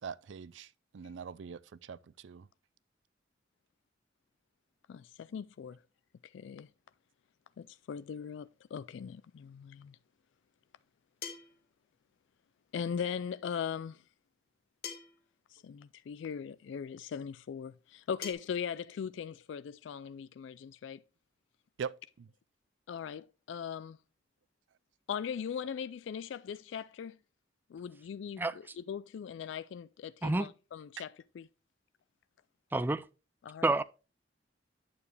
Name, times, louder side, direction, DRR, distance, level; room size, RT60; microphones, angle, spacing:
voice 1, 0.0-2.5 21.8-22.3 31.0-31.1, right 6 dB, 85° right, 0.4 m, -43 dB
voice 2, 4.9-5.8 6.3-6.7 7.6-10.0 12.7-14.0 15.5-21.0 22.9-24.0 25.1-27.2 27.7-28.4 28.8-31.1 31.4-31.5 33.4-33.7, left 7 dB, 85° left, 0.3 m, -39 dB
sound 1, 9.5-9.6 11.2-11.7 13.2-13.3 14.8-15.3 16.5-16.6 18.2-18.3, left 7 dB, 55° left, 1.5 m, -43 dB
voice 3, 32.7-33.0 33.6-33.8, right 2 dB, 10° right, 0.3 m, -28 dB
8.7 x 7.0 x 3.2 m
head